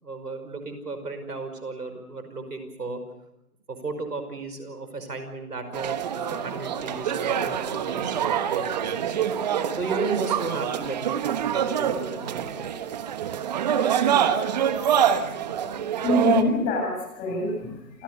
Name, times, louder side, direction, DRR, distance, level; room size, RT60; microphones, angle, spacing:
voice 1, 0.0-3.0 3.7-9.4 9.8-12.9, right 3 dB, 85° right, 8 dB, 5.5 m, -34 dB
sound 1, 5.7-16.4, right 9 dB, 30° right, 1.2 m, -26 dB
voice 2, 15.9-18.0, left 2 dB, 20° left, 1 dB, 7.6 m, -25 dB
28.0 x 17.5 x 6.8 m, 0.84 s
hypercardioid pair, 155°, 46 cm